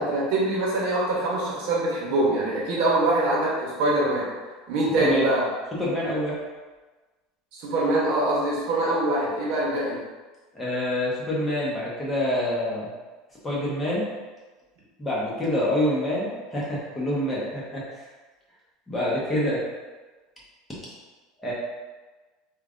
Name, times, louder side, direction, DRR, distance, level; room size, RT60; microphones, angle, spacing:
voice 1, 0.0-4.3 4.7-5.4 7.5-10.0, right 2 dB, 65° right, -5 dB, 0.9 m, -24 dB
voice 2, 5.8-6.4 10.5-12.9 13.4-14.1 15.0-18.0 18.9-19.6 21.4-21.5, left 1 dB, 15° left, -7 dB, 1.0 m, -26 dB
3.1 x 2.4 x 2.5 m, 1.3 s
supercardioid pair, 110°, 0 cm